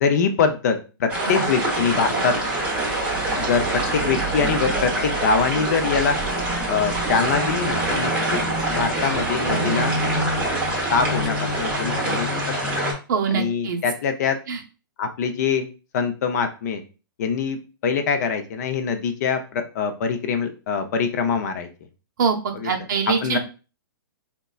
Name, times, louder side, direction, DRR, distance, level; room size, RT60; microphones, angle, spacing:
voice 1, 0.0-2.4 3.4-6.2 6.7-8.4 8.7-9.9 10.9-12.3 12.6-12.8 13.3-14.4 15.0-15.7 15.9-16.8 17.2-21.7 22.5-22.7 23.2-23.4, left 5 dB, 45° left, 7 dB, 0.5 m, -23 dB
sound 1, 1.1-12.9, right 1 dB, 10° right, 0.7 m, -24 dB
voice 2, 13.1-13.8 14.5-14.6 22.2-23.4, right 6 dB, 55° right, 1 dB, 0.7 m, -24 dB
3.9 x 2.2 x 2.3 m, 0.33 s
hypercardioid pair, 150°, 12 cm